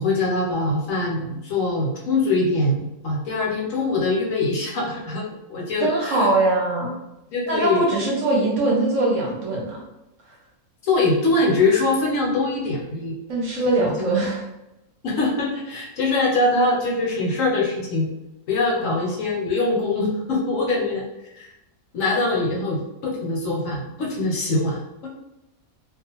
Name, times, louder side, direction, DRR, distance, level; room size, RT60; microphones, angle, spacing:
voice 1, 0.0-6.3 7.3-7.8 10.8-13.1 13.8-14.1 15.0-18.1 18.5-21.0 21.3-21.5 21.9-25.1, left 2 dB, 70° left, -3 dB, 0.9 m, -23 dB
voice 2, 5.8-6.9 7.5-9.8 13.3-14.4 18.8-19.2, right 2 dB, 65° right, -3 dB, 0.9 m, -22 dB
2.4 x 2.3 x 2.8 m, 0.93 s
omnidirectional pair, 1.6 m